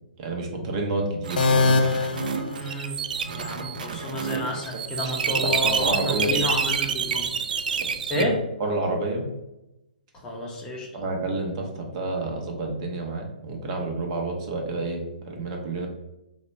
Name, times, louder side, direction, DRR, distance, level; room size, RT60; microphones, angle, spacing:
voice 1, 0.2-1.8 4.3-4.4 4.7-4.8 5.3-6.4 7.8-8.3 8.6-9.2 10.9-15.0 15.3-15.9, right 2 dB, 40° right, 2 dB, 0.7 m, -29 dB
sound 1, 1.2-8.2, right 6 dB, 65° right, 0.4 m, -28 dB
sound 2, 1.4-3.3, left 3 dB, 70° left, 0.4 m, -23 dB
voice 2, 2.5-3.0 3.3-7.4 8.1-8.4 10.2-11.0, left 1 dB, 15° left, -1 dB, 0.6 m, -30 dB
2.9 x 2.1 x 4.1 m, 0.92 s
hypercardioid pair, 135°, 5 cm